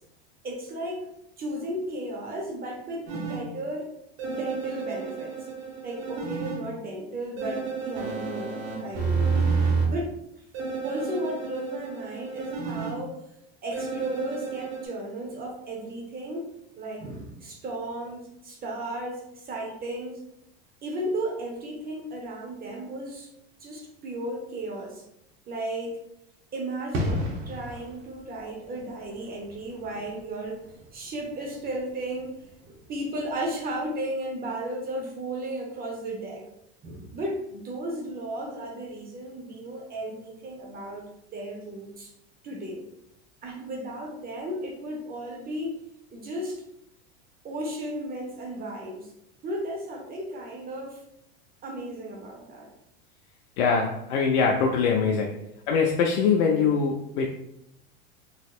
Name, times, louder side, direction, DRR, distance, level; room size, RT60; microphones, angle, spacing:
voice 1, 0.4-1.1 1.4-3.9 4.2-5.4 5.8-9.3 9.9-10.1 10.8-13.2 13.6-16.5 16.8-20.2 20.8-23.3 23.6-25.0 25.5-26.0 26.5-30.6 30.9-36.4 36.8-42.1 42.4-42.8 43.4-45.8 46.1-46.6 47.4-49.1 49.4-51.0 51.6-52.7, right 1 dB, 30° right, 0 dB, 0.7 m, -34 dB
sound 1, 3.1-3.4 4.2-6.6 7.4-9.8 10.5-12.9 13.7-14.9, right 5 dB, 65° right, 1.5 m, -30 dB
sound 2, 26.9-33.4 33.7-33.9, left 1 dB, 45° right, 0.9 m, -36 dB
voice 2, 53.6-57.3, left 5 dB, 90° left, 1 dB, 0.5 m, -23 dB
4.0 x 2.9 x 2.4 m, 0.80 s
supercardioid pair, 125°, 32 cm